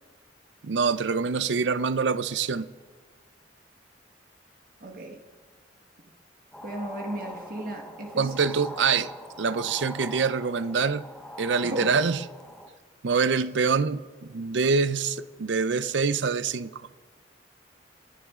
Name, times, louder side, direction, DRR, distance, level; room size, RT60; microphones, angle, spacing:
voice 1, 0.6-2.7 8.2-9.1 9.4-11.0 11.4-12.2 13.0-16.9, right 5 dB, 75° right, 0.6 m, -25 dB
voice 2, 4.8-5.2 6.6-8.3 11.6-12.1, right 1 dB, 50° right, 1.5 m, -35 dB
sound 1, 6.5-12.7, left 1 dB, 5° left, 0.9 m, -42 dB
27.0 x 10.5 x 3.7 m
head